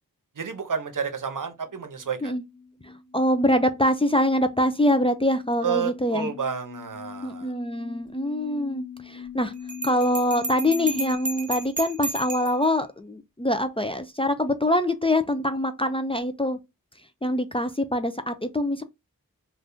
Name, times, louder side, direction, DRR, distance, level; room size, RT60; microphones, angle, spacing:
voice 1, 0.4-2.3 5.6-7.5, right 7 dB, 65° right, 0.8 m, -30 dB
sound 1, 1.7-11.1, left 6 dB, 55° left, 0.6 m, -42 dB
voice 2, 2.8-6.3 7.2-9.5 9.8-16.6 17.2-18.8, left 1 dB, 15° left, 0.4 m, -24 dB
Bell, 9.7-12.6, right 3 dB, 25° right, 0.6 m, -32 dB
3.4 x 2.5 x 2.6 m
wide cardioid pair, 50°, 34 cm